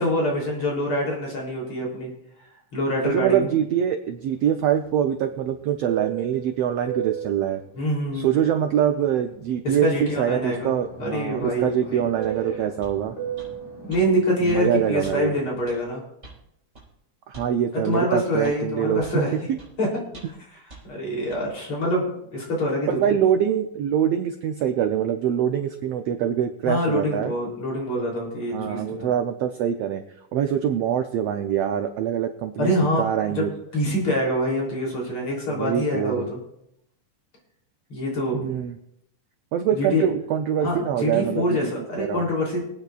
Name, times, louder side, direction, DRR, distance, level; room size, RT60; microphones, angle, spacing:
voice 1, 0.0-2.1 2.7-3.6 7.8-8.4 9.6-10.7 11.0-12.0 13.9-16.0 17.7-19.3 19.8-19.9 20.9-23.2 26.6-29.2 32.6-33.5 33.7-36.4 37.9-38.5 39.7-40.1 40.6-42.6, equal, 45° left, -3 dB, 4.1 m, -25 dB
voice 2, 3.0-7.6 8.1-13.1 14.4-15.3 17.3-19.0 19.3-19.6 22.9-27.3 28.5-30.0 30.3-32.7 33.0-33.5 35.5-36.3 38.3-38.8 39.5-41.7 42.0-42.3, right 9 dB, 75° right, 7 dB, 1.5 m, -24 dB
Fixed-wing aircraft airplane, 4.3-9.6 10.0-15.8, right 8 dB, 70° left, 3.8 m, -37 dB
sound 1, 12.2-12.4 12.8-13.0 13.4-13.5 13.9-14.0 14.5-14.6 15.0-15.2 15.7-15.8 16.2-16.4 16.7-16.9 17.3-17.5 17.9-18.0 18.4-18.6 19.0-19.2 19.6-19.7 20.1-20.4 20.7-20.8 21.3-21.4, right 2 dB, 25° right, 4.6 m, -45 dB
25.0 x 9.3 x 2.4 m, 0.78 s
omnidirectional pair, 3.5 m